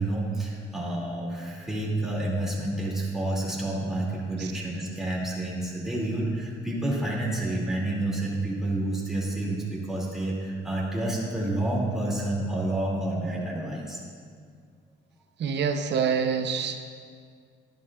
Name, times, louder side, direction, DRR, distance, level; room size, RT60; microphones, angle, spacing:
voice 1, 0.0-14.0, right 1 dB, ahead, -5 dB, 2.5 m, -29 dB
voice 2, 15.4-16.8, right 6 dB, 60° right, 7 dB, 0.8 m, -26 dB
11.5 x 11.0 x 2.4 m, 2.1 s
cardioid pair, 90°, 20 cm